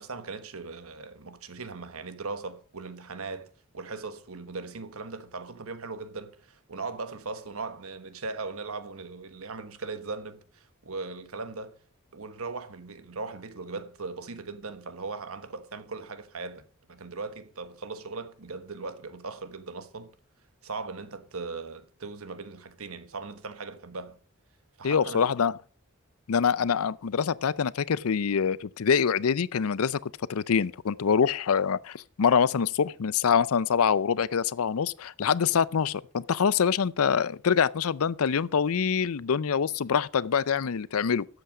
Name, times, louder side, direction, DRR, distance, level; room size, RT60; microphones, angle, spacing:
voice 1, 0.0-11.8 12.1-20.1 20.6-24.2 24.8-25.3, right 4 dB, 70° right, 1.2 m, -39 dB
voice 2, 24.8-25.5 26.3-41.3, left 6 dB, 75° left, 0.5 m, -25 dB
12.5 x 8.1 x 4.9 m
head